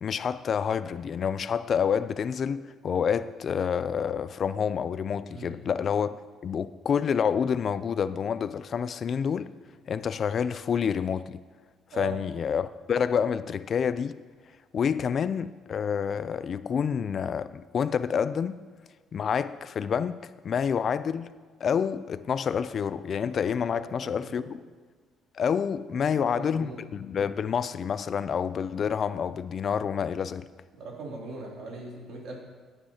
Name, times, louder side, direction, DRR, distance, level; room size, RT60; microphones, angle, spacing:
voice 1, 0.0-6.2 6.4-9.5 9.9-11.4 11.9-14.1 14.7-18.6 19.1-21.3 21.6-24.4 25.3-30.5, left 7 dB, 45° left, 0.3 m, -28 dB
voice 2, 23.7-24.5 26.1-26.8 30.7-32.4, right 3 dB, 70° right, 2.8 m, -41 dB
16.0 x 8.9 x 2.8 m
cardioid pair, 115°, 0 cm